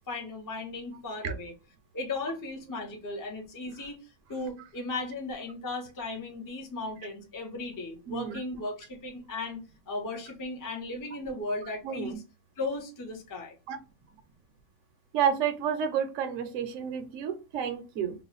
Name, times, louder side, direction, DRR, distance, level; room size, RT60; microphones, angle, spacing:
voice 1, 0.1-1.5 1.9-9.6 9.9-12.2 12.6-13.6, left 2 dB, 20° left, 0.5 m, -36 dB
voice 2, 8.1-8.4 11.8-12.2 13.7-13.8 15.1-18.1, right 8 dB, 65° right, 0.9 m, -30 dB
3.0 x 2.2 x 3.9 m
omnidirectional pair, 1.5 m